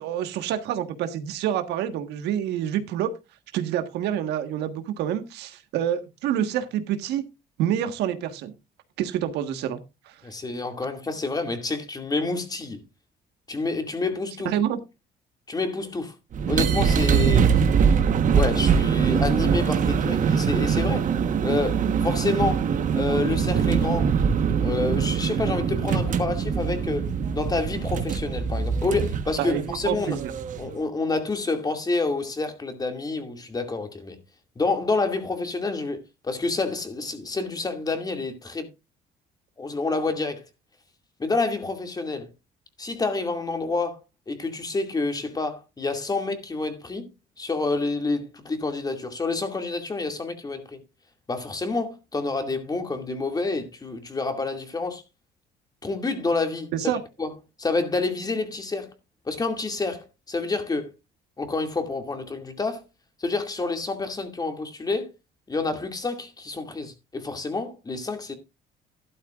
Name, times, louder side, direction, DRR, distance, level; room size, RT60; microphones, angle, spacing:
voice 1, 0.0-3.1 3.5-7.2 7.6-8.5 9.0-9.8 10.1-10.2 14.4-14.8 29.4-30.3 56.7-57.0, right 10 dB, 85° right, 1.5 m, -27 dB
voice 2, 10.2-12.8 13.5-14.5 15.5-16.1 16.5-17.5 18.3-21.1 21.4-24.1 24.6-30.2 30.6-34.2 34.6-38.7 39.6-40.5 41.2-42.3 42.8-44.0 44.3-47.1 47.4-50.8 51.3-55.0 55.8-56.9 57.2-57.3 57.6-58.9 59.3-60.9 61.4-62.8 63.2-65.1 65.5-68.3, left 3 dB, 20° left, 2.4 m, -28 dB
sound 1, 16.3-30.7, right 7 dB, 50° right, 1.3 m, -23 dB
12.5 x 12.0 x 2.5 m
cardioid pair, 110°, 17 cm